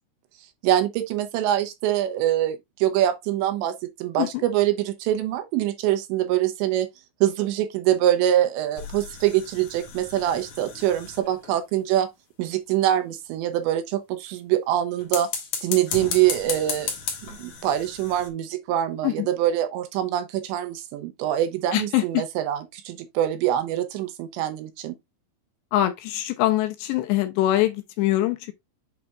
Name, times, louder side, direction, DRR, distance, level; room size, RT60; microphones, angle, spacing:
voice 1, 0.6-6.9 7.2-12.1 12.4-15.3 15.6-16.9 17.3-24.9, right 12 dB, 80° right, 2.9 m, -24 dB
sound 1, 8.7-11.6 15.0-18.3, left 6 dB, 60° left, 2.3 m, -34 dB
voice 2, 21.7-22.2 25.7-28.5, left 15 dB, 80° left, 2.7 m, -23 dB
7.9 x 5.7 x 2.4 m
omnidirectional pair, 5.4 m